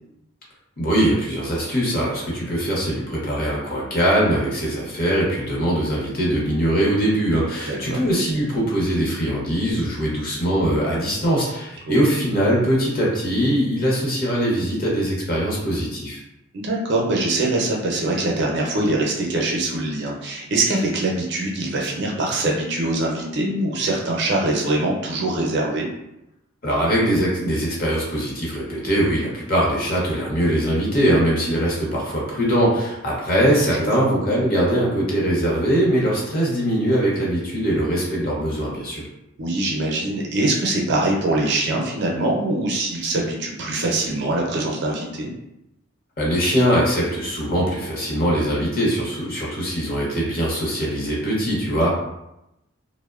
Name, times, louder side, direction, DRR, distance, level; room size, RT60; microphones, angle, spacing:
voice 1, 0.8-16.2 26.6-39.0 46.2-51.9, right 1 dB, 45° left, -4 dB, 0.7 m, -21 dB
voice 2, 7.7-8.0 11.9-12.0 16.5-25.9 33.8-33.9 39.4-45.3, right 2 dB, 55° right, -1 dB, 0.5 m, -23 dB
2.9 x 2.1 x 2.3 m, 0.88 s
head